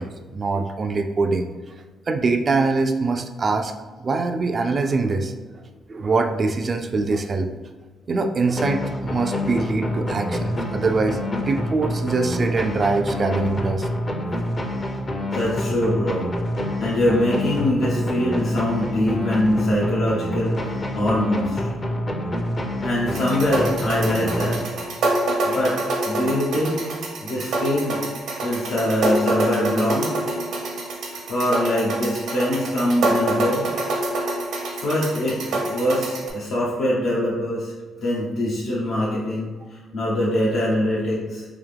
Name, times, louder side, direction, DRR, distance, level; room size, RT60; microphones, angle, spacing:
voice 1, 0.0-1.5 2.1-3.7 4.0-5.4 5.9-7.5 8.1-13.9, right 3 dB, 40° right, 6 dB, 0.3 m, -23 dB
sound 1, 8.6-25.1, left 1 dB, 35° left, 0.5 m, -27 dB
voice 2, 15.3-16.3 16.5-21.6 22.8-24.6 25.4-26.9 27.2-28.0 28.4-30.1 31.1-33.6 34.8-37.7 38.0-41.5, left 1 dB, 80° left, -8 dB, 0.8 m, -23 dB
sound 2, 23.1-36.3, right 2 dB, 75° right, 0.8 m, -26 dB
3.5 x 2.8 x 3.3 m, 1.3 s
cardioid pair, 90°, 0 cm